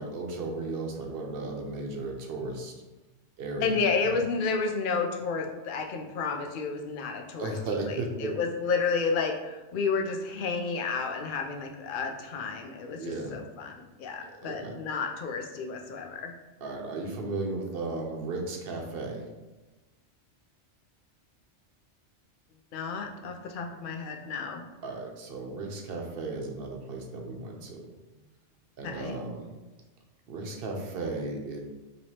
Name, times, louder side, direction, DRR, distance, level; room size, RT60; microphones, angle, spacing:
voice 1, 0.0-2.8 3.4-3.8 7.4-8.4 12.1-12.2 13.0-13.4 14.3-14.8 16.6-19.2 24.8-28.2 28.8-29.5 30.3-31.6, right 3 dB, 60° right, 2 dB, 0.8 m, -35 dB
voice 2, 3.6-7.6 7.9-13.0 13.3-16.3 22.7-24.6 28.8-29.2, left 4 dB, 60° left, 4 dB, 0.6 m, -31 dB
4.6 x 2.9 x 2.8 m, 1.1 s
omnidirectional pair, 1.2 m